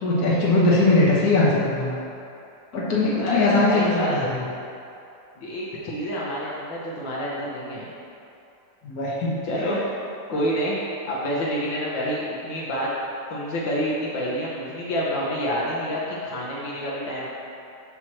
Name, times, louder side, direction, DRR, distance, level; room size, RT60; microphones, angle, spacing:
voice 1, 0.0-2.0 2.7-4.4 8.8-9.4, left 2 dB, 55° left, -6 dB, 1.7 m, -20 dB
voice 2, 3.2-4.2 5.4-7.9 9.4-9.8 10.3-12.9 13.3-17.3, equal, 75° left, -6 dB, 1.6 m, -28 dB
7.5 x 3.0 x 6.2 m, 2.7 s
omnidirectional pair, 2.1 m